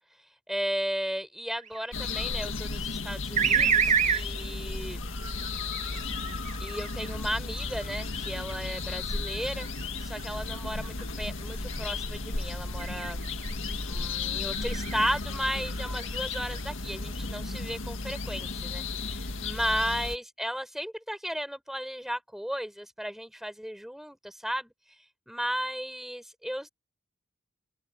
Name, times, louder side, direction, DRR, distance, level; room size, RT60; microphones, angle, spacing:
voice 1, 0.5-5.1 6.2-9.7 10.0-13.2 13.8-24.7 25.3-26.7, equal, ahead, 5.0 m, -35 dB
sound 1, 1.6-2.3 3.4-4.2 5.2-7.1 7.8-11.1 11.5-11.9 12.8-13.7 14.5-15.2 15.7-16.6, right 6 dB, 35° right, 1.8 m, -30 dB
sound 2, 1.9-20.2, left 3 dB, 70° left, 2.0 m, -34 dB
open air
head